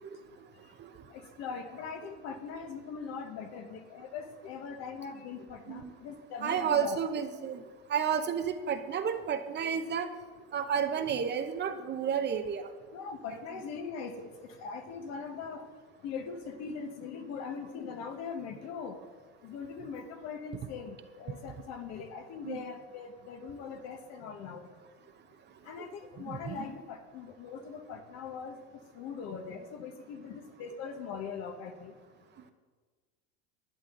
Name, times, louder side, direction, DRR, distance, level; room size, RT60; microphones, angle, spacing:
voice 1, 1.1-7.0 12.9-15.6 16.0-19.0 19.4-24.7 25.6-28.6 28.9-31.9, left 6 dB, 55° left, 6 dB, 1.4 m, -41 dB
voice 2, 6.4-7.6 7.9-10.1 10.5-12.6 22.4-22.6 26.3-26.6, right 7 dB, 35° right, 8 dB, 0.8 m, -31 dB
11.5 x 9.8 x 3.9 m, 1.4 s
supercardioid pair, 110°, 32 cm